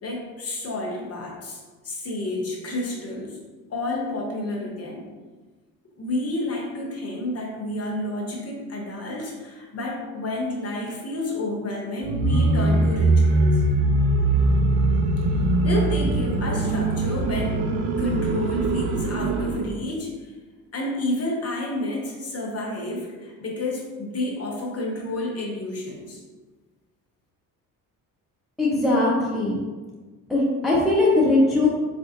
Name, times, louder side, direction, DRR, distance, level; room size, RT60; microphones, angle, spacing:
voice 1, 0.0-3.4 3.7-5.1 6.0-13.6 15.6-17.7 18.0-20.3 20.7-26.2, left 1 dB, 30° left, -2 dB, 0.8 m, -30 dB
sound 1, 12.0-19.7, right 2 dB, 60° right, 0.6 m, -21 dB
voice 2, 28.6-29.6 30.3-31.7, left 2 dB, ahead, -5 dB, 0.6 m, -20 dB
4.2 x 2.4 x 2.5 m, 1.3 s
figure-of-eight pair, 50°, 50 cm